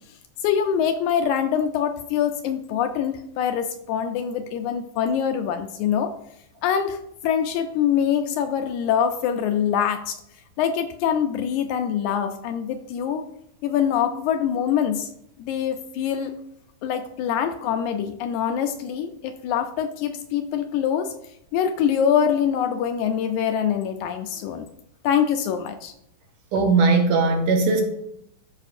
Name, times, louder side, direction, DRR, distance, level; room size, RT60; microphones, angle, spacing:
voice 1, 0.4-6.1 6.6-10.2 10.6-13.2 13.6-15.1 15.4-16.3 16.8-21.1 21.5-24.7 25.0-25.9, left 8 dB, 80° left, 7 dB, 1.8 m, -24 dB
voice 2, 26.5-27.8, right 4 dB, 70° right, 3 dB, 1.9 m, -19 dB
13.0 x 5.5 x 2.5 m, 0.75 s
omnidirectional pair, 3.7 m